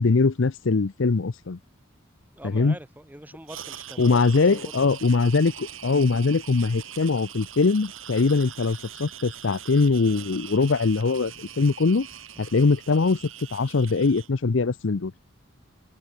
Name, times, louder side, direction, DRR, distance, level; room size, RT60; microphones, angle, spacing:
voice 1, 0.0-1.6 2.4-2.7 4.0-12.1 12.4-13.2 13.5-15.1, left 4 dB, 65° left, 0.6 m, -22 dB
voice 2, 2.4-4.9, right 1 dB, 10° right, 3.6 m, -43 dB
sound 1, 3.5-14.3, right 10 dB, 80° right, 6.0 m, -42 dB
open air
head